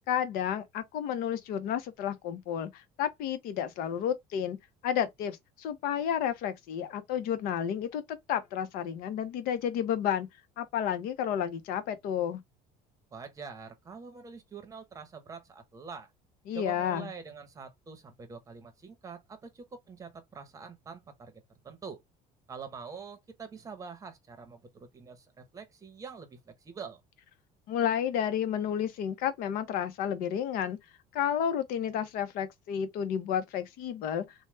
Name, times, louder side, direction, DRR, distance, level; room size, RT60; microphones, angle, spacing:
voice 1, 0.1-4.6 4.8-10.3 10.6-12.4 16.5-17.1 27.7-30.8 31.1-34.2, left 9 dB, 70° left, 0.7 m, -31 dB
voice 2, 13.1-16.1 16.5-22.0 22.5-27.0, right 5 dB, 20° right, 0.8 m, -45 dB
3.1 x 2.1 x 3.2 m
cardioid pair, 140°, 16 cm